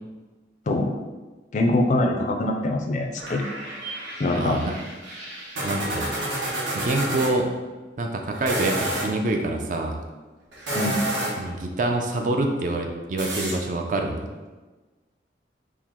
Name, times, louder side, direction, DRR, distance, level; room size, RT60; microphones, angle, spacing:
voice 1, 1.5-3.4 4.2-4.6 10.7-11.0, left 2 dB, 40° left, 3 dB, 0.4 m, -23 dB
soda machine, 3.2-7.3 8.3-9.1 10.5-11.5 13.2-13.5, right 1 dB, 80° right, 1.0 m, -30 dB
voice 2, 4.3-4.7 5.6-6.1 6.7-7.5 8.0-10.0 11.4-14.3, right 2 dB, 45° right, 3 dB, 0.4 m, -26 dB
4.4 x 2.0 x 3.6 m, 1.2 s
head